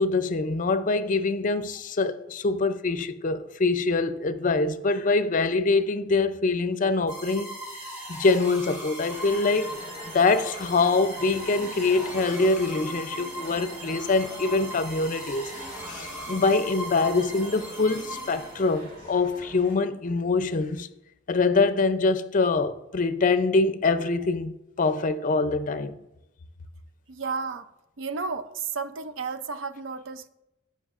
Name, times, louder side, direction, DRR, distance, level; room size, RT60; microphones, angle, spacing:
voice 1, 0.0-7.6 8.1-9.7 10.1-15.5 15.9-20.9 21.3-26.0, left 3 dB, 45° left, 0.5 m, -24 dB
sound 1, 7.1-18.9, equal, 15° right, 2.1 m, -39 dB
sound 2, 9.1-19.8, equal, 30° right, 2.0 m, -43 dB
voice 2, 27.1-27.7 28.0-30.3, right 4 dB, 75° right, 0.5 m, -32 dB
16.5 x 5.8 x 2.5 m
head